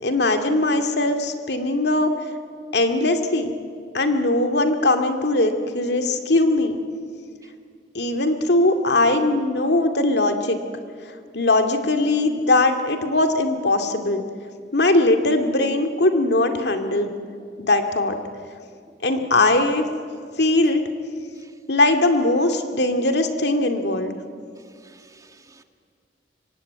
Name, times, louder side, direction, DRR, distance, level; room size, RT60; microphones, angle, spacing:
voice 1, 0.0-2.1 2.7-3.5 3.9-6.8 7.9-10.6 11.3-14.2 14.7-17.2 17.6-18.2 19.0-19.9 20.4-20.8 21.7-24.1, left 2 dB, 70° left, 6 dB, 2.3 m, -20 dB
voice 2, 24.6-25.6, right 3 dB, 20° right, 6 dB, 1.7 m, -53 dB
25.0 x 24.5 x 9.5 m, 2.1 s
head